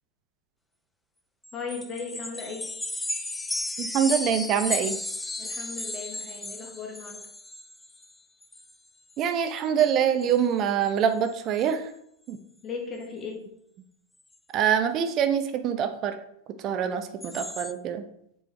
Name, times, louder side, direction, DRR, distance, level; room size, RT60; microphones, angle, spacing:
sound 1, 1.4-8.1 8.4-8.7 9.1-9.2 9.7-9.9 10.2-10.3 10.9-11.0 11.3-11.6 17.2-17.7, left 2 dB, 10° left, 0.4 m, -34 dB
voice 1, 1.5-2.7 5.4-7.2 12.6-13.5, left 4 dB, 25° left, 1 dB, 1.5 m, -37 dB
voice 2, 3.8-5.0 9.2-11.9 12.3-12.4 14.5-16.1 16.6-18.0, right 8 dB, 35° right, 8 dB, 0.7 m, -25 dB
7.7 x 4.8 x 3.4 m, 0.74 s
figure-of-eight pair, 90°, 0 cm